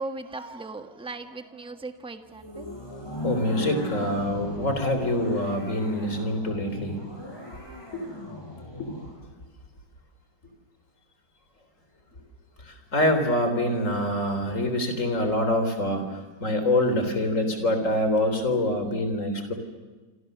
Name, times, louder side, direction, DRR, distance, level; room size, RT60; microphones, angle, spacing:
voice 1, 0.0-2.7, right 3 dB, 5° right, 7 dB, 1.2 m, -37 dB
sound 1, 2.3-9.2, left 1 dB, 15° left, 7.6 m, -37 dB
voice 2, 3.2-7.0 7.9-8.1 8.8-8.9 12.6-19.5, left 1 dB, 45° left, 7 dB, 4.0 m, -25 dB
27.0 x 27.0 x 6.8 m, 1.3 s
omnidirectional pair, 1.9 m